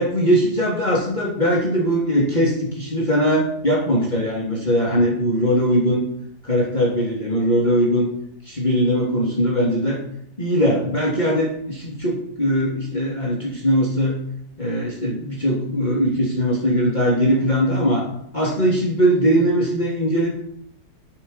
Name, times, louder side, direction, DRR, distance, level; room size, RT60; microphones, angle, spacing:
voice 1, 0.0-6.0 6.4-8.1 8.4-10.0 10.4-14.2 14.6-18.1 18.3-20.3, equal, 25° left, -5 dB, 3.0 m, -20 dB
12.0 x 7.0 x 6.7 m, 0.74 s
omnidirectional pair, 1.8 m